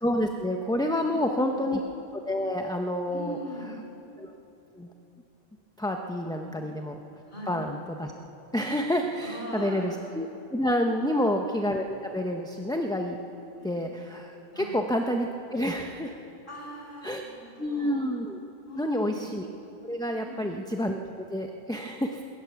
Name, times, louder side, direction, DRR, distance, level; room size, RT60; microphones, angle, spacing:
voice 1, 0.0-1.8 2.1-3.4 4.2-4.3 4.8-4.9 5.8-7.0 7.5-8.1 8.5-13.2 13.6-16.2 17.0-17.2 17.6-18.4 18.8-19.5 19.8-22.2, left 1 dB, 5° left, 3 dB, 0.7 m, -29 dB
voice 2, 1.0-1.7 3.1-3.8 6.4-6.6 7.3-7.6 9.2-9.9 11.0-11.3 13.6-13.8 14.5-14.8 16.5-18.0 18.7-19.2 20.2-20.5, right 1 dB, 55° left, -2 dB, 5.0 m, -41 dB
20.5 x 18.0 x 7.1 m, 2.9 s
omnidirectional pair, 1.0 m